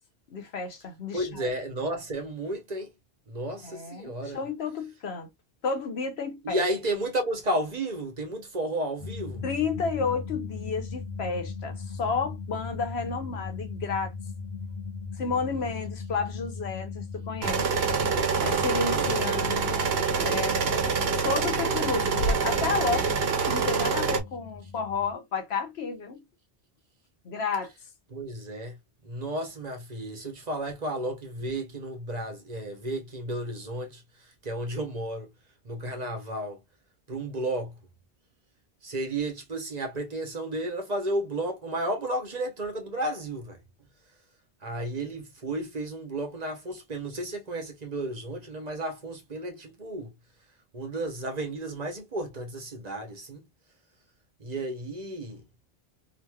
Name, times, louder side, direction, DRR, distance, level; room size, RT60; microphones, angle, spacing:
voice 1, 0.3-1.5 3.6-5.3 5.6-6.6 9.4-14.1 15.2-17.6 18.4-19.8 20.2-20.6 21.2-26.2 27.2-27.7, left 5 dB, 80° left, 1.1 m, -31 dB
voice 2, 1.1-2.9 3.3-4.4 6.4-9.4 18.9-19.1 28.1-28.8 29.0-35.3 35.6-36.6 37.1-37.7 38.8-43.6 44.6-50.1 50.7-53.4 54.4-55.4, right 1 dB, 45° right, 0.9 m, -33 dB
sound 1, 9.0-25.1, left 4 dB, 50° left, 1.0 m, -39 dB
sound 2, 17.4-24.2, right 5 dB, 75° right, 1.0 m, -26 dB
3.0 x 2.7 x 2.2 m
omnidirectional pair, 1.0 m